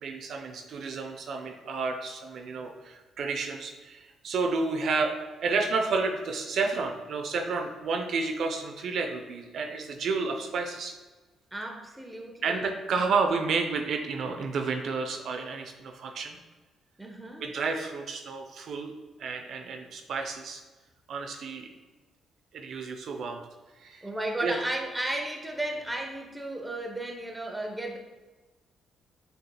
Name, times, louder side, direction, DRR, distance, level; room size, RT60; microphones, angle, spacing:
voice 1, 0.0-10.9 12.4-16.4 17.4-18.9 19.2-20.6 21.1-21.7 22.5-23.4 23.8-24.1 24.4-24.5, right 4 dB, 65° right, 5 dB, 0.4 m, -31 dB
voice 2, 11.5-12.7 13.0-13.1 17.0-17.5 24.0-28.0, right 1 dB, 10° right, 2 dB, 0.7 m, -34 dB
6.5 x 2.8 x 2.2 m, 1.2 s
cardioid pair, 90°, 0 cm